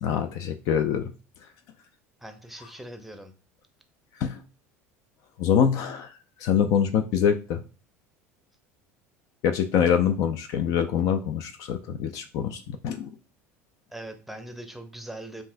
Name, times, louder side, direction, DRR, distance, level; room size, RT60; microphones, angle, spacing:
voice 1, 0.0-1.0 4.2-4.4 5.4-6.1 6.4-7.6 9.4-13.1, left 8 dB, 45° left, 8 dB, 0.4 m, -24 dB
voice 2, 2.2-3.3 13.9-15.4, right 1 dB, ahead, 6 dB, 0.7 m, -41 dB
5.3 x 2.5 x 2.5 m, 0.34 s
figure-of-eight pair, 70°, 8 cm